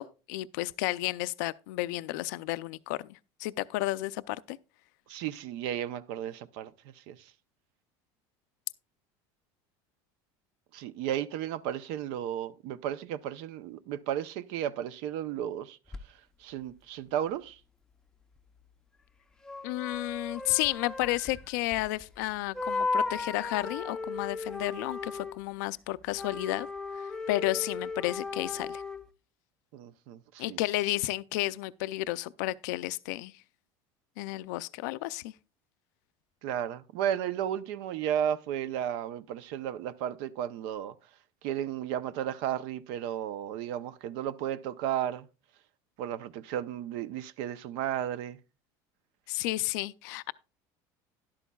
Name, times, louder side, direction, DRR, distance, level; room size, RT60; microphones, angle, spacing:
voice 1, 0.0-4.6 19.6-26.7 27.3-28.8 30.4-33.3 34.2-35.3 49.3-50.3, left 18 dB, 90° left, 0.4 m, -32 dB
voice 2, 5.1-6.7 7.1-7.2 10.7-15.8 16.4-17.6 29.7-30.6 36.4-40.9 41.4-45.3 46.0-48.4, right 10 dB, 70° right, 0.6 m, -34 dB
sound 1, 15.9-16.0 19.4-22.2 22.5-25.4 26.1-29.1, left 3 dB, 5° left, 0.5 m, -36 dB
12.5 x 11.5 x 2.3 m
cardioid pair, 155°, 9 cm